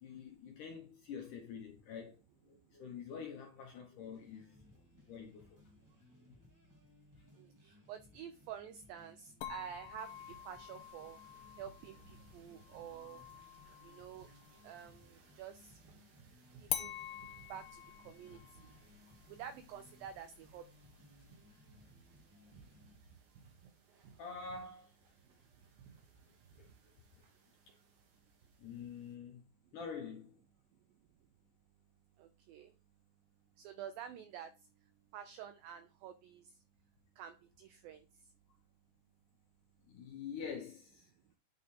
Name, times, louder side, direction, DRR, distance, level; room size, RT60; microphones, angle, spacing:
voice 1, 0.0-2.2 2.5-4.6 5.1-5.6 7.2-7.3 18.3-18.4 24.2-24.9 26.6-26.7 27.7-27.8 28.6-29.4 29.7-30.4 39.8-41.1, left 6 dB, 75° left, 2.0 m, -46 dB
sound 1, 4.1-23.0, left 1 dB, 10° right, 0.9 m, -64 dB
voice 2, 7.4-11.2 11.6-13.2 13.8-14.3 14.6-15.8 16.6-17.0 17.5-18.7 19.4-20.6 32.2-32.7 33.6-34.5 35.1-36.5 37.2-38.1, right 9 dB, 85° right, 2.0 m, -49 dB
sound 2, 9.4-15.0 16.7-21.7, left 12 dB, 90° left, 2.8 m, -47 dB
sound 3, 9.8-29.1, right 6 dB, 70° right, 2.9 m, -64 dB
9.7 x 3.7 x 4.2 m
omnidirectional pair, 4.7 m